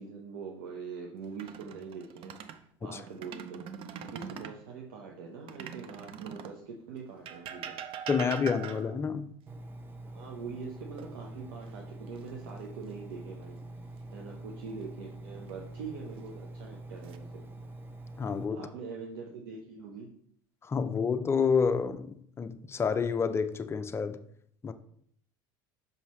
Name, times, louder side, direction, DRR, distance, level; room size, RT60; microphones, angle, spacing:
voice 1, 0.0-2.3 2.8-3.6 4.0-7.8 10.0-13.6 14.1-17.4 18.5-20.1, right 5 dB, 85° right, 0.9 m, -43 dB
sound 1, 1.2-2.6 3.1-4.6 5.5-6.6 7.3-9.1 11.0-11.7 12.1-12.3 15.2-15.8 16.5-17.2, right 8 dB, 50° right, 0.6 m, -42 dB
voice 2, 8.1-9.3 18.2-18.7 20.6-24.2 24.6-24.7, left 6 dB, 20° left, 0.5 m, -29 dB
Engine, 9.5-18.5, right 2 dB, 20° right, 0.8 m, -45 dB
5.6 x 5.4 x 3.1 m
supercardioid pair, 95°, 12 cm